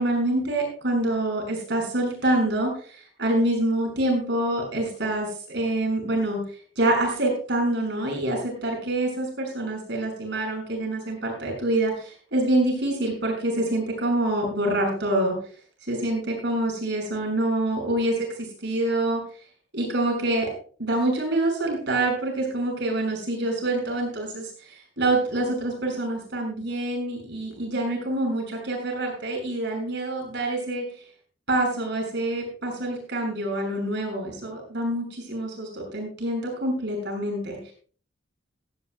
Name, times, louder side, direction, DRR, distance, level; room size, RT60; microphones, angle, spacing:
voice 1, 0.0-6.4 6.8-15.3 15.9-19.2 19.7-20.5 20.8-30.8 31.5-37.6, right 1 dB, 65° right, 1 dB, 7.3 m, -26 dB
18.0 x 14.0 x 2.3 m, 0.43 s
head